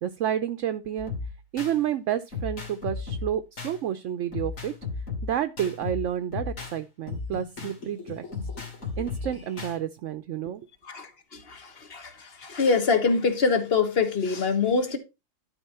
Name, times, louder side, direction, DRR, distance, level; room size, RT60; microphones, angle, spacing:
voice 1, 0.0-1.1 1.5-4.7 5.2-8.2 9.0-10.7, right 10 dB, 70° right, 1.0 m, -30 dB
sound 1, 1.0-1.8 2.3-3.8 4.3-6.8 7.1-9.8, left 4 dB, 75° left, 2.9 m, -35 dB
voice 2, 10.8-15.0, left 5 dB, 50° left, 1.5 m, -25 dB
12.0 x 4.7 x 4.3 m
omnidirectional pair, 1.4 m